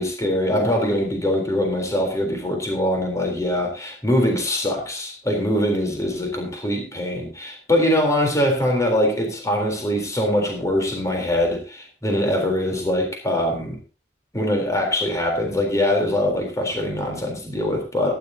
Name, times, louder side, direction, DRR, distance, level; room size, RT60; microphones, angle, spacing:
voice 1, 0.0-13.8 14.3-18.1, left 1 dB, 20° left, 1 dB, 3.7 m, -23 dB
18.0 x 11.0 x 2.8 m, 0.33 s
head